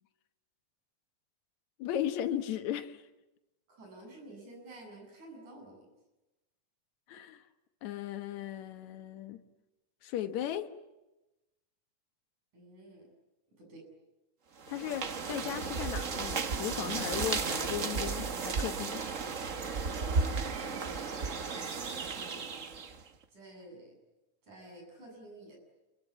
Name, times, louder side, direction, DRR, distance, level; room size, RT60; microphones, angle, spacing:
voice 1, 1.8-3.1 7.1-7.4 7.8-9.4 10.0-10.7 14.7-19.1, left 11 dB, 75° left, 8 dB, 2.5 m, -36 dB
voice 2, 3.7-5.9 12.5-13.1 13.6-13.9 19.8-21.7 22.1-23.0 23.3-24.0 24.4-25.6, right 2 dB, 80° right, 2 dB, 9.2 m, -50 dB
sound 1, 14.6-23.0, right 5 dB, 60° right, 0.8 m, -34 dB
27.5 x 23.0 x 8.5 m, 1.0 s
omnidirectional pair, 3.4 m